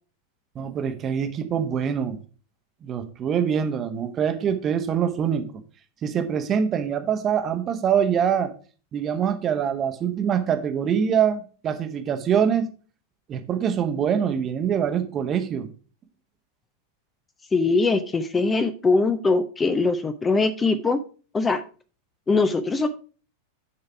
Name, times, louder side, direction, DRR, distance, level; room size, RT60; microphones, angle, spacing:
voice 1, 0.5-2.2 2.8-5.5 6.0-8.5 8.9-12.7 13.3-15.7, right 8 dB, 30° right, 8 dB, 1.0 m, -24 dB
voice 2, 17.5-21.0 21.3-21.6 22.3-22.9, left 3 dB, 15° left, 11 dB, 0.5 m, -22 dB
10.0 x 4.0 x 4.6 m, 0.38 s
figure-of-eight pair, 90°, 0 cm